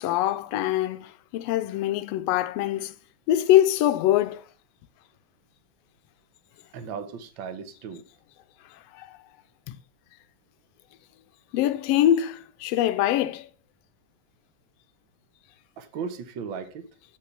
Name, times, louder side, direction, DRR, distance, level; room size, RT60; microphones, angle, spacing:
voice 1, 0.0-2.9 3.3-4.5 8.7-9.2 9.7-9.8 11.5-13.5, left 12 dB, 80° left, 1.4 m, -24 dB
voice 2, 6.7-8.0 15.8-16.9, right 6 dB, 60° right, 1.3 m, -36 dB
8.3 x 6.2 x 5.7 m
omnidirectional pair, 3.4 m